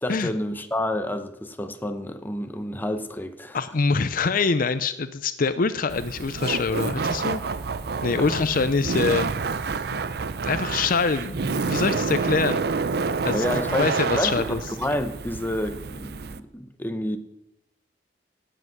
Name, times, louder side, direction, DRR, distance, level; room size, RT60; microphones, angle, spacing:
voice 1, 0.0-3.6 8.2-8.3 13.3-17.2, left 1 dB, 10° left, 8 dB, 0.9 m, -29 dB
voice 2, 3.5-7.4 8.0-9.3 9.9-10.0 10.4-12.6 13.2-14.6, left 4 dB, 55° left, 13 dB, 0.6 m, -24 dB
Laughter, 5.9-16.4, right 4 dB, 65° right, 0.6 m, -28 dB
17.5 x 7.9 x 6.1 m, 0.86 s
head